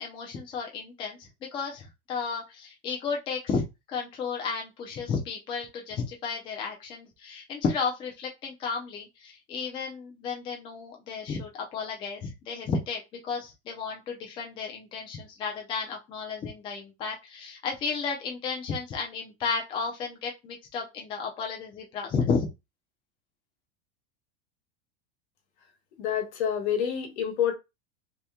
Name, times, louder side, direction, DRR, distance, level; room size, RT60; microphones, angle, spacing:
voice 1, 0.0-22.5, left 5 dB, 15° left, 0.4 m, -33 dB
voice 2, 26.0-27.5, left 9 dB, 85° left, 1.2 m, -27 dB
2.9 x 2.1 x 3.5 m
supercardioid pair, 170°, 33 cm